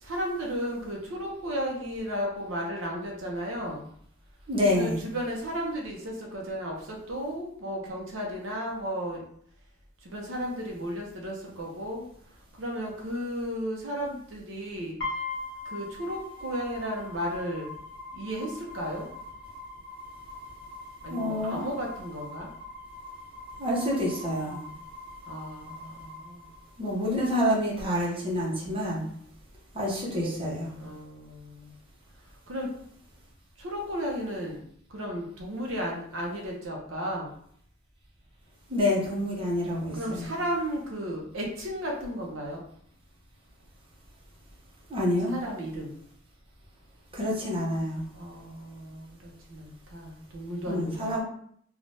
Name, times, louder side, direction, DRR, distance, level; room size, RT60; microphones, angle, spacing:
voice 1, 0.0-3.9 4.7-9.2 10.0-12.0 12.6-15.0 15.6-17.7 18.1-19.1 21.0-22.5 25.3-26.5 30.1-31.7 32.5-32.7 33.6-34.6 34.9-37.3 39.9-42.6 45.3-45.9 48.1-51.2, equal, 90° right, -1 dB, 0.7 m, -34 dB
voice 2, 4.5-5.0 21.1-21.7 23.6-24.6 26.8-29.0 29.7-30.7 38.7-40.3 44.9-45.4 47.1-48.0 50.7-51.2, left 1 dB, 30° right, -4 dB, 0.8 m, -27 dB
sound 1, 15.0-27.0, left 3 dB, 60° left, 0.9 m, -42 dB
3.2 x 2.3 x 2.6 m, 0.64 s
head